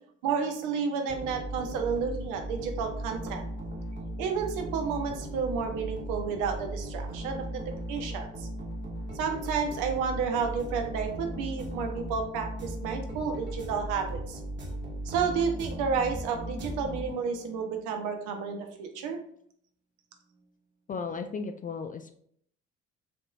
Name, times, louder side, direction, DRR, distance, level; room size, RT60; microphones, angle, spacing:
voice 1, 0.2-3.4 4.2-7.6 7.9-8.5 9.1-14.4 15.0-19.2, right 6 dB, 65° right, 4 dB, 0.8 m, -31 dB
sound 1, 1.1-17.5, right 1 dB, 35° right, 1.3 m, -37 dB
voice 2, 20.9-22.1, left 5 dB, 25° left, 8 dB, 0.4 m, -35 dB
5.2 x 3.0 x 2.4 m, 0.65 s
figure-of-eight pair, 50°, 34 cm